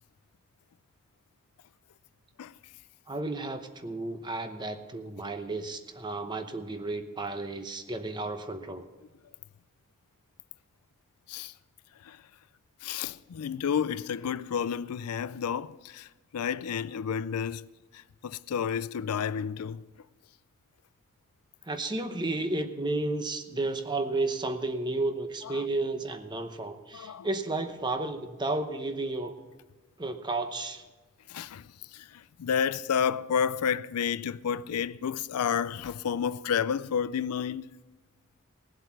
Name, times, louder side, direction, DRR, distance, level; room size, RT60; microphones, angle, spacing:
voice 1, 3.1-8.9 21.6-29.3 30.0-30.8, right 2 dB, 20° right, 0.9 m, -32 dB
voice 2, 12.8-17.7 17.9-19.8 26.9-27.3 31.3-37.7, left 7 dB, 80° left, 0.4 m, -31 dB
18.5 x 7.9 x 5.9 m
head